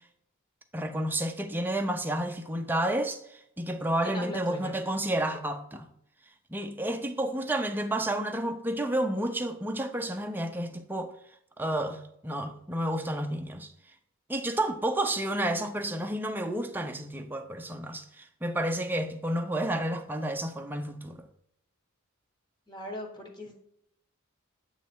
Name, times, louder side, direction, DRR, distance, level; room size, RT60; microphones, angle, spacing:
voice 1, 0.7-5.9 6.5-11.1 11.6-13.7 14.3-21.2, right 1 dB, 10° right, 0.5 m, -31 dB
voice 2, 4.0-4.7 22.7-23.6, left 1 dB, 20° left, 1.1 m, -39 dB
8.3 x 3.1 x 4.5 m
head